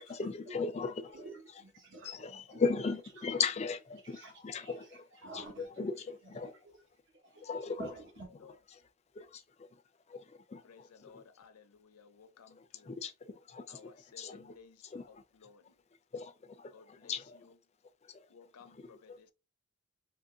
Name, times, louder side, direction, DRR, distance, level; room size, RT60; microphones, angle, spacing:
voice 1, 0.0-1.3 2.0-5.1 5.3-6.5 7.4-7.9 8.7-8.8 9.2-9.8 10.1-11.2 12.6-14.6 14.9-15.2 16.1-17.4 18.0-18.3 19.1-19.2, left 5 dB, 30° left, 0.3 m, -38 dB
voice 2, 1.1-2.6 4.0-5.7 6.2-6.8 7.1-7.5 7.8-8.3, right 3 dB, 55° right, 1.1 m, -50 dB
voice 3, 10.6-13.0 13.7-15.8 16.7-17.6 18.3-19.3, left 5 dB, 85° left, 0.5 m, -58 dB
2.9 x 2.6 x 3.7 m
head